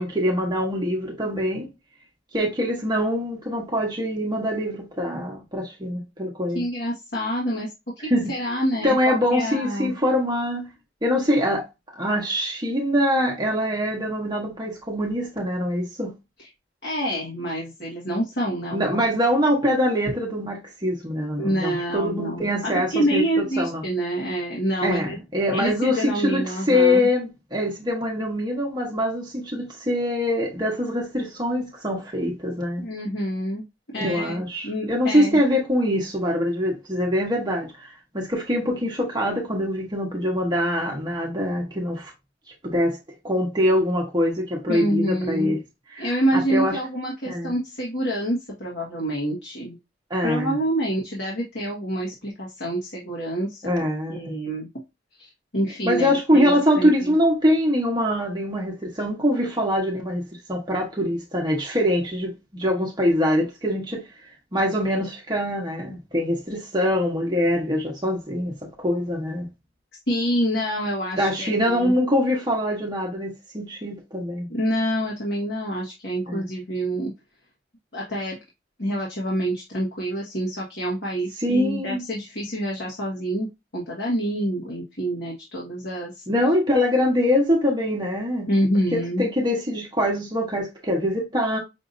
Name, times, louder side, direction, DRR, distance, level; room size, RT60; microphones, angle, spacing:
voice 1, 0.0-1.7 2.3-6.6 8.1-8.3 8.8-10.7 11.0-11.7 11.9-16.1 18.7-23.8 24.8-32.8 34.0-42.1 42.6-43.0 43.2-45.6 45.9-46.8 47.3-47.5 50.1-50.6 53.6-54.4 55.8-64.0 64.5-69.5 71.2-74.5 76.3-76.5 81.4-82.0 86.3-88.5 88.9-91.6, equal, 20° right, 1.0 m, -24 dB
voice 2, 6.5-7.7 8.0-9.9 16.4-16.5 16.8-19.1 21.4-25.2 25.5-27.1 32.8-33.6 33.9-35.4 44.7-45.6 46.0-49.8 50.2-54.7 55.2-57.1 70.1-71.9 74.5-77.1 77.9-78.4 78.8-83.5 83.7-86.2 88.5-89.2, right 1 dB, 60° left, 1.6 m, -27 dB
6.0 x 2.7 x 2.6 m
head